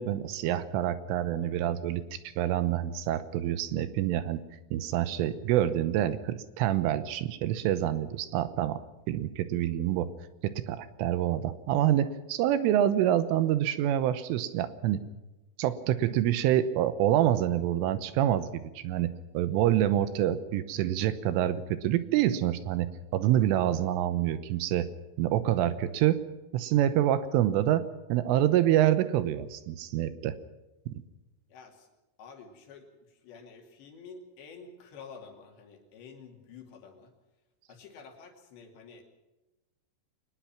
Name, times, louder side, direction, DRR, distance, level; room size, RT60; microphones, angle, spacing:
voice 1, 0.0-4.4 4.7-8.8 9.1-10.1 10.4-15.0 15.6-24.9 25.2-26.2 26.5-30.4 30.9-31.0, right 12 dB, 80° right, 13 dB, 3.3 m, -27 dB
voice 2, 31.5-31.9 32.2-37.1 37.7-39.0, left 5 dB, 60° left, 3 dB, 4.5 m, -49 dB
23.5 x 19.5 x 5.9 m, 1.1 s
omnidirectional pair, 5.9 m